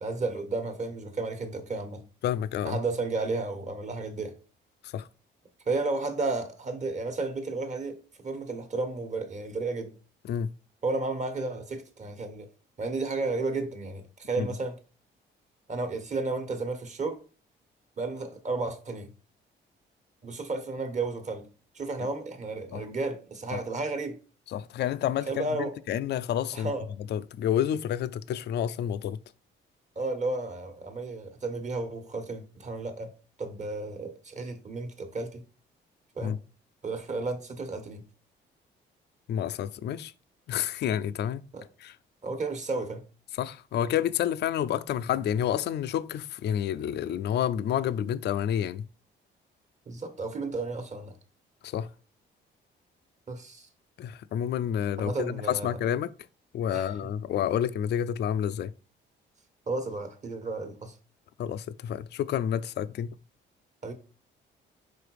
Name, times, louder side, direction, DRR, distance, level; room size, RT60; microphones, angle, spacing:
voice 1, 0.0-2.0 2.6-4.4 5.6-9.9 10.8-12.5 12.8-14.8 15.7-17.2 18.0-19.1 20.2-21.5 21.7-24.2 25.3-25.7 26.5-26.9 29.9-33.1 33.4-35.4 36.2-36.3 36.8-38.0 41.5-41.7 42.2-43.0 49.9-51.1 53.3-53.7 55.0-55.8 56.7-56.9 59.7-60.9 63.8-63.9, right 3 dB, 35° right, 1.3 m, -33 dB
voice 2, 2.2-2.8 4.8-5.1 10.2-10.5 14.4-14.5 22.7-22.8 23.5-23.6 24.5-25.5 25.9-26.7 27.1-29.2 36.2-36.4 39.3-40.1 40.5-41.5 41.8-42.0 43.3-48.8 51.6-51.9 54.0-56.1 56.5-58.7 61.4-63.1, left 10 dB, 60° left, 0.4 m, -29 dB
5.1 x 3.8 x 4.8 m
cardioid pair, 90°, 20 cm